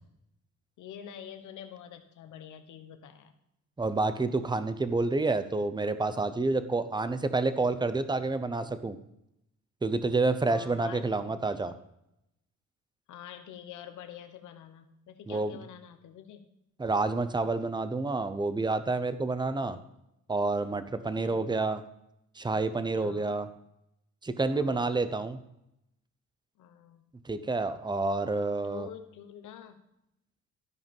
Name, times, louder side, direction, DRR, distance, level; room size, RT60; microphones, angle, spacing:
voice 1, 0.8-3.3 10.5-11.7 13.1-16.5 19.7-19.8 20.9-21.5 22.9-23.4 24.5-25.0 26.6-27.1 28.6-29.8, left 9 dB, 80° left, 8 dB, 1.2 m, -47 dB
voice 2, 3.8-9.0 9.8-11.7 15.3-15.5 16.8-19.8 20.3-21.8 22.4-23.5 24.2-25.4 27.2-28.9, right 3 dB, 15° right, 11 dB, 0.8 m, -29 dB
13.0 x 5.1 x 5.4 m, 0.82 s
cardioid pair, 90°, 30 cm